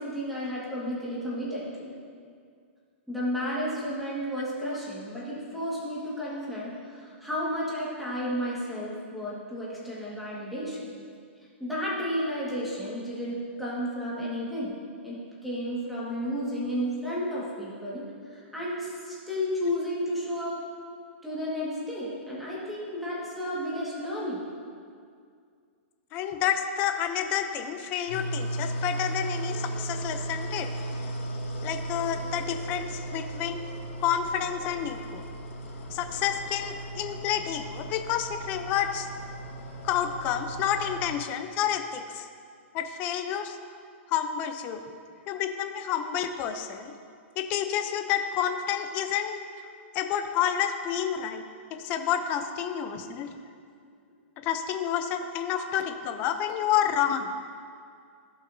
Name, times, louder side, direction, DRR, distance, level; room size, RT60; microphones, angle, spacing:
voice 1, 0.0-1.9 3.1-10.9 11.6-14.7 15.0-20.6 21.2-24.4 52.8-52.9 55.5-55.6, equal, ahead, -8 dB, 1.6 m, -32 dB
voice 2, 26.1-30.7 31.6-33.6 34.0-35.2 35.9-39.1 39.8-42.3 42.7-43.6 44.1-44.8 45.3-46.9 47.4-49.4 49.9-51.4 51.8-53.3 54.4-57.3, left 9 dB, 25° left, 7 dB, 0.5 m, -29 dB
sound 1, 28.1-41.1, right 1 dB, 90° left, 1.5 m, -36 dB
15.0 x 5.7 x 2.7 m, 2.2 s
hypercardioid pair, 165°, 7 cm